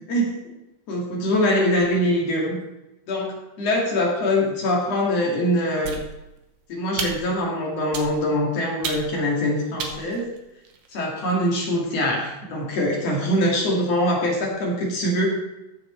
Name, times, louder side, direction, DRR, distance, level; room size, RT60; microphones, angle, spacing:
voice 1, 0.1-0.5 0.9-2.6 3.1-6.0 6.7-10.3 10.9-15.3, left 1 dB, 45° left, -2 dB, 2.7 m, -23 dB
sound 1, 5.8-6.5 7.0-7.4 7.9-8.4 8.8-9.3 9.8-10.9, right 5 dB, 70° right, 1.8 m, -33 dB
13.5 x 6.3 x 4.3 m, 0.92 s
omnidirectional pair, 4.6 m